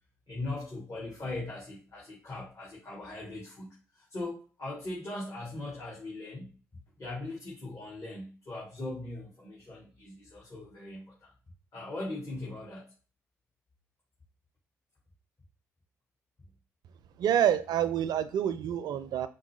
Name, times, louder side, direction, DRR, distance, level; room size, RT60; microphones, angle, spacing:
voice 1, 0.3-6.5 7.0-11.3 11.7-12.9, left 2 dB, 45° left, -5 dB, 1.7 m, -40 dB
voice 2, 17.2-19.3, right 10 dB, 65° right, 13 dB, 0.4 m, -27 dB
4.5 x 2.1 x 3.2 m, 0.37 s
hypercardioid pair, 40°, 7 cm